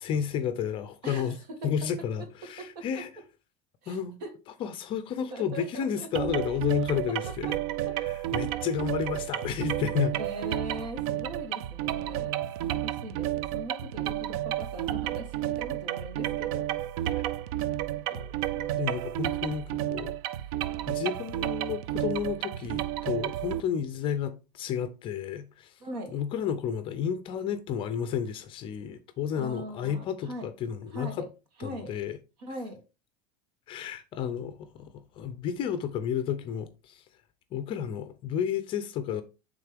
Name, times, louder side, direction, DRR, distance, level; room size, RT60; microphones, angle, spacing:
voice 1, 0.0-1.4 1.6-3.1 3.9-4.2 4.6-7.5 8.0-10.1 17.2-17.3 18.1-20.1 20.9-25.7 26.1-31.3 31.6-32.2 33.7-37.0 37.5-39.2, left 8 dB, 25° left, 0.4 m, -32 dB
voice 2, 1.0-1.7 2.4-3.0 3.8-4.3 5.3-6.1 6.9-7.6 7.9-8.0 10.1-12.4 12.6-16.7 25.8-26.2 29.4-30.5 30.9-31.3 31.6-31.9 32.4-32.8, right 1 dB, 85° right, 2.2 m, -40 dB
sound 1, 6.1-23.6, right 13 dB, 60° right, 0.4 m, -31 dB
9.0 x 3.7 x 3.5 m
supercardioid pair, 175°, 21 cm